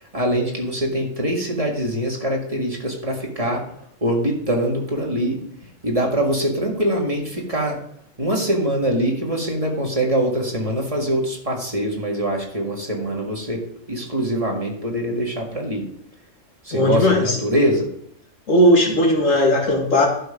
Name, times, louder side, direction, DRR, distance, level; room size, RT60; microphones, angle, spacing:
voice 1, 0.1-3.6 4.0-5.4 5.8-7.8 8.2-13.6 13.9-15.9 16.6-17.9, right 1 dB, 30° right, 0 dB, 2.0 m, -23 dB
voice 2, 16.7-17.4 18.5-20.1, left 1 dB, 85° left, 0 dB, 2.4 m, -17 dB
11.5 x 5.7 x 5.0 m, 0.71 s
omnidirectional pair, 1.3 m